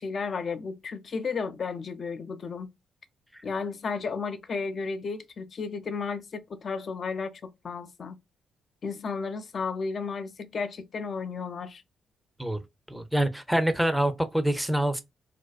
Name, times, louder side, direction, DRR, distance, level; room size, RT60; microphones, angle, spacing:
voice 1, 0.0-2.7 3.4-8.2 8.8-11.8, left 5 dB, 50° left, 0.4 m, -33 dB
voice 2, 12.9-15.0, right 1 dB, 5° right, 0.5 m, -26 dB
2.5 x 2.2 x 2.3 m
hypercardioid pair, 40°, 0 cm